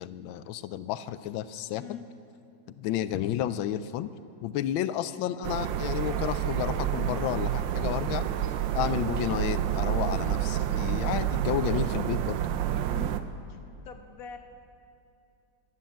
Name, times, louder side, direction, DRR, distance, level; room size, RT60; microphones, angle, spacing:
voice 1, 0.0-2.0 2.8-4.1 4.4-8.2 8.7-12.4, left 11 dB, 90° left, 14 dB, 1.4 m, -31 dB
voice 2, 1.7-2.1 8.8-9.0 12.9-13.1 13.5-13.6 13.8-14.4, left 7 dB, 50° left, 5 dB, 1.4 m, -43 dB
sound 1, 5.4-13.2, right 11 dB, 80° right, 1.4 m, -29 dB
16.5 x 11.5 x 7.5 m, 2.6 s
omnidirectional pair, 2.1 m